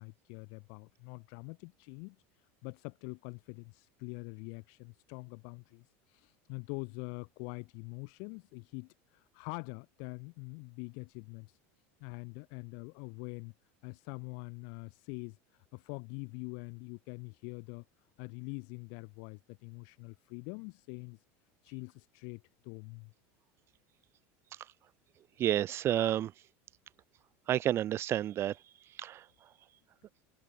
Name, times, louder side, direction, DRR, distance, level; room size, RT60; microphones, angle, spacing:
voice 1, 0.0-2.2 2.6-11.6 12.0-13.5 13.8-17.8 18.2-21.2 21.6-23.1, left 40 dB or more, 65° left, 5.8 m, -44 dB
voice 2, 25.4-26.3 27.5-28.5 29.0-29.2, right 12 dB, 35° right, 0.5 m, -30 dB
supercardioid pair, 120°, 7 cm